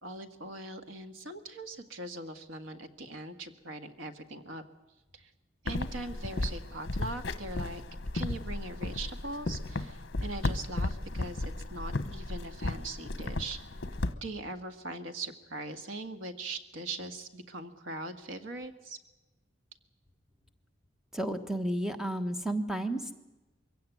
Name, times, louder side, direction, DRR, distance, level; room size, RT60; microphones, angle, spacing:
voice 1, 0.0-4.6 5.1-5.3 5.6-7.8 8.1-13.6 14.2-19.0, right 2 dB, 80° right, 8 dB, 1.7 m, -41 dB
sound 1, 5.7-14.1, left 2 dB, 60° left, 1.0 m, -35 dB
voice 2, 21.1-23.1, right 1 dB, ahead, 7 dB, 1.2 m, -32 dB
23.0 x 16.5 x 9.3 m, 1.1 s
head